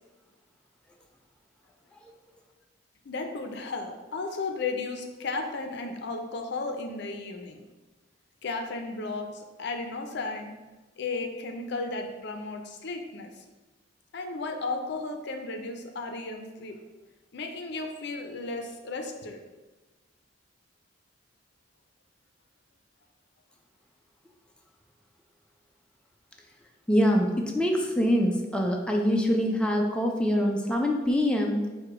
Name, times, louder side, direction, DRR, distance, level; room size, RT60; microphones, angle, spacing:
voice 1, 3.0-7.6 8.4-10.5 11.0-13.4 14.1-16.8 17.3-19.4, left 3 dB, 65° left, 5 dB, 0.5 m, -34 dB
voice 2, 26.9-31.6, equal, 5° left, 0 dB, 0.4 m, -24 dB
4.7 x 2.2 x 4.7 m, 1.2 s
head